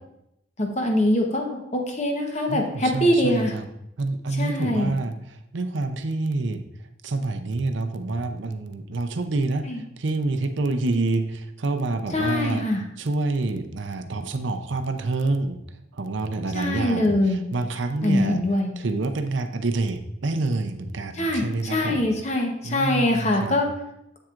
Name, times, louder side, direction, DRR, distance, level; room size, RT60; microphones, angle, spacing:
voice 1, 0.6-3.5 4.4-5.0 9.7-9.8 12.1-12.8 16.5-17.4 18.0-18.7 21.2-23.7, left 1 dB, 35° left, 2 dB, 1.0 m, -23 dB
voice 2, 2.5-3.6 4.0-5.1 5.5-6.6 7.0-12.6 13.0-15.6 15.9-18.4 18.8-22.1 22.6-23.6, right 2 dB, 70° right, 7 dB, 0.6 m, -27 dB
7.5 x 7.3 x 2.5 m, 0.81 s
head